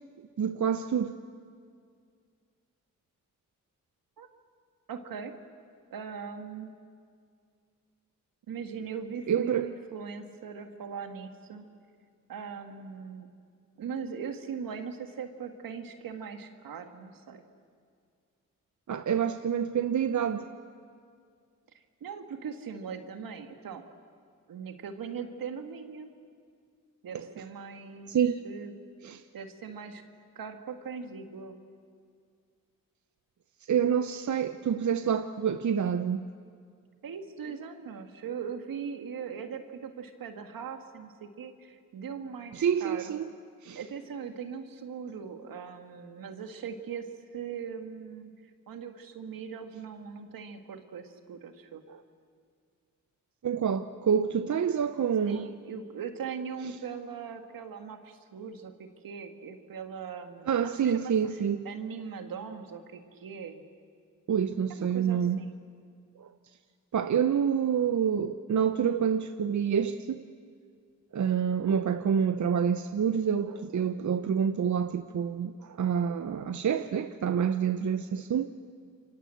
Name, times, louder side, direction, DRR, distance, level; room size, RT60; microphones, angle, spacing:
voice 1, 0.4-1.1 9.3-9.7 18.9-20.5 27.1-27.3 28.1-28.4 29.0-29.2 33.7-36.2 42.5-43.3 43.6-43.8 51.9-52.0 53.4-55.5 60.5-61.7 64.3-65.4 66.2-66.3 66.9-70.2 71.1-78.5, right 7 dB, 60° right, 0.9 m, -27 dB
voice 2, 4.9-5.4 5.9-6.7 8.5-11.6 12.3-13.3 13.8-17.4 22.0-23.9 24.5-26.1 27.0-28.2 28.4-28.7 29.3-30.0 30.4-31.6 37.0-43.1 43.8-47.1 47.3-48.3 48.7-51.8 55.3-61.1 61.7-63.6 64.7-65.6 76.6-76.8, right 6 dB, 80° right, 1.9 m, -40 dB
28.5 x 24.0 x 7.8 m
cardioid pair, 60°, 34 cm